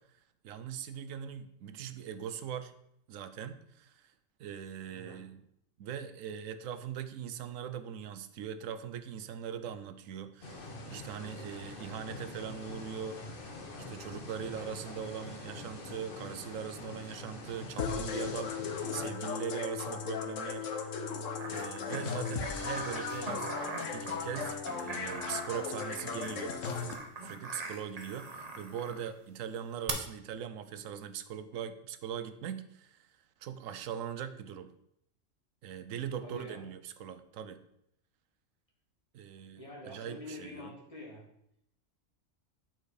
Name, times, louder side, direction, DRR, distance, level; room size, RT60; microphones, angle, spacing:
voice 1, 0.4-2.7 3.1-4.1 4.4-5.4 5.8-18.6 18.9-20.7 21.5-23.5 23.9-26.6 27.2-33.1 33.4-34.7 35.6-37.6 39.1-40.7, right 8 dB, 90° right, 11 dB, 1.0 m, -41 dB
voice 2, 4.9-5.3 36.2-36.7 39.5-41.2, left 1 dB, 25° left, -2 dB, 2.0 m, -46 dB
sound 1, 10.4-19.1, left 2 dB, 45° left, 1.2 m, -45 dB
sound 2, 17.8-26.9, left 6 dB, 75° left, 1.2 m, -37 dB
sound 3, 21.4-29.1 29.9-30.0, right 3 dB, 35° right, 0.9 m, -42 dB
8.9 x 4.5 x 4.8 m, 0.74 s
omnidirectional pair, 1.3 m